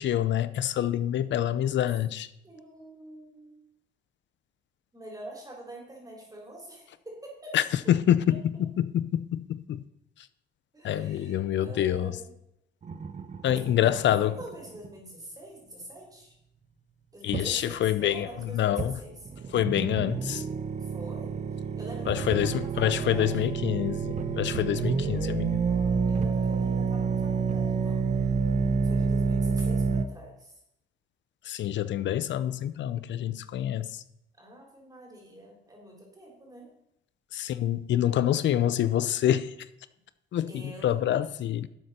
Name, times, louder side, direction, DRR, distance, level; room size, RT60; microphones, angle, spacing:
voice 1, 0.0-2.3 7.5-9.8 10.8-12.2 13.4-14.3 17.2-18.3 18.5-18.9 19.5-20.4 22.1-25.6 31.5-34.0 37.3-39.5 40.3-41.7, left 11 dB, 65° left, 0.6 m, -26 dB
voice 2, 2.4-3.6 4.9-7.6 7.8-7.9 10.7-12.3 13.5-16.4 17.1-19.3 20.8-23.5 24.7-25.0 25.6-28.1 28.8-30.6 34.4-36.7 40.5-41.0, right 1 dB, 20° right, 4.1 m, -45 dB
sound 1, 12.8-14.9 17.3-17.5 18.8-18.9 19.3-30.1, right 5 dB, 35° right, 0.8 m, -28 dB
12.0 x 7.8 x 4.3 m
cardioid pair, 90°, 20 cm